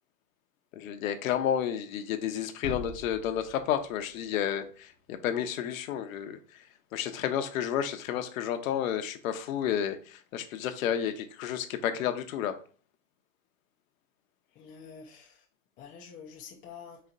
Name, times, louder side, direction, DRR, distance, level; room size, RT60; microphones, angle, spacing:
voice 1, 0.7-6.4 6.9-12.6, left 9 dB, 65° left, 0.9 m, -31 dB
sound 1, 2.6-4.6 5.0-5.1, left 3 dB, 40° right, 1.4 m, -43 dB
voice 2, 14.6-15.4 15.8-17.0, left 6 dB, 20° left, 0.5 m, -47 dB
4.3 x 3.1 x 3.8 m
hypercardioid pair, 140°, 45 cm